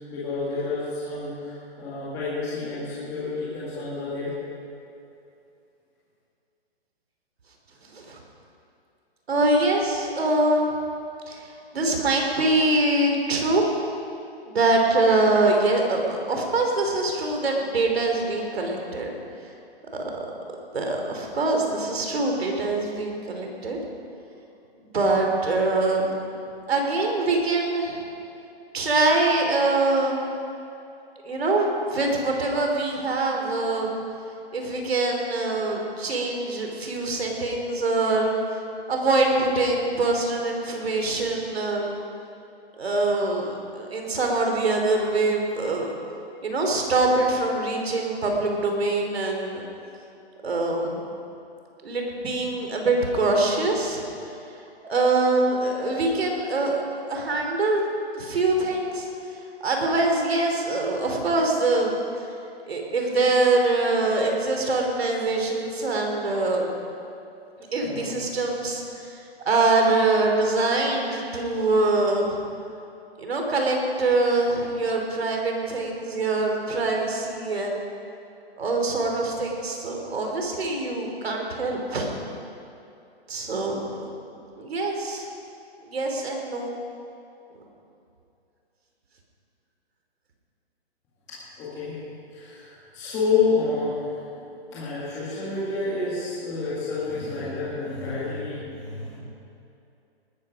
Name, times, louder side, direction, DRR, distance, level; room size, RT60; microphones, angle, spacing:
voice 1, 0.0-4.4 67.8-68.1 91.3-92.0 92.3-94.4 94.7-99.1, left 4 dB, 10° left, -10 dB, 1.9 m, -29 dB
voice 2, 9.3-10.7 11.3-13.6 14.5-19.1 19.9-20.0 20.7-23.8 24.9-26.1 26.7-28.0 28.7-30.3 31.2-33.9 34.5-38.4 38.9-41.9 42.8-45.9 46.4-49.6 50.4-51.0 51.8-54.0 54.8-56.8 57.1-57.8 58.1-59.1 59.6-62.0 62.7-66.7 67.7-69.2 69.5-72.4 73.2-77.8 78.6-82.1 83.3-84.1 84.6-85.3 85.9-86.7, right 2 dB, 70° right, 1 dB, 3.7 m, -24 dB
19.5 x 13.0 x 5.1 m, 2.7 s
hypercardioid pair, 175°, 32 cm